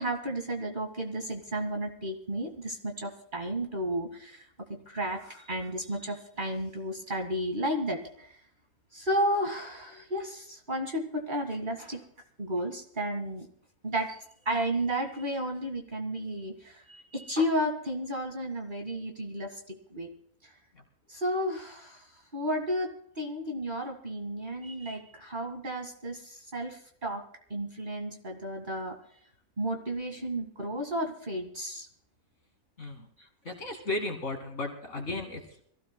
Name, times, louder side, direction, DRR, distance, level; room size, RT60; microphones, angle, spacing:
voice 1, 0.0-4.5 4.9-8.4 8.9-12.0 12.4-13.5 13.8-14.2 14.5-20.1 20.4-20.5 21.1-22.1 22.3-27.2 27.5-29.0 29.6-31.9, equal, 30° right, 3 dB, 2.0 m, -33 dB
voice 2, 32.8-33.1 33.4-35.6, left 2 dB, 50° left, 3 dB, 2.3 m, -35 dB
25.5 x 16.0 x 2.2 m, 0.67 s
omnidirectional pair, 1.6 m